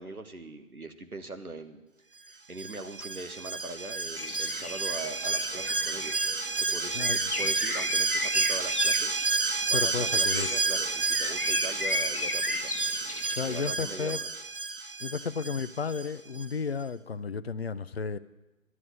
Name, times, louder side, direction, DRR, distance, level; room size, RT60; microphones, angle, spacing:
voice 1, 0.0-1.8 2.2-6.2 6.6-7.0 7.4-9.2 9.7-12.8 13.4-14.3 15.0-15.1, right 3 dB, 90° right, 8 dB, 1.5 m, -41 dB
Alarm, 2.6-16.1 16.4-16.5, right 3 dB, 40° right, 0.6 m, -30 dB
Bird, 4.2-13.7, left 3 dB, 85° left, 1.1 m, -36 dB
voice 2, 6.9-7.3 9.7-10.5 13.4-14.2 15.0-18.2, left 5 dB, 50° left, 14 dB, 0.5 m, -33 dB
11.0 x 8.5 x 9.2 m, 1.0 s
figure-of-eight pair, 150°, 43 cm